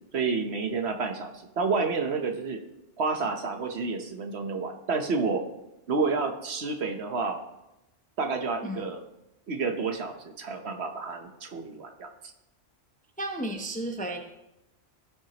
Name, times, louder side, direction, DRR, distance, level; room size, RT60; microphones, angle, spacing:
voice 1, 0.1-2.6 3.0-5.4 5.9-7.4 8.2-9.0 9.5-12.1, right 4 dB, 60° right, 5 dB, 1.1 m, -29 dB
voice 2, 13.2-14.2, right 1 dB, 10° left, 3 dB, 0.6 m, -33 dB
16.0 x 6.1 x 2.9 m, 0.92 s
omnidirectional pair, 1.3 m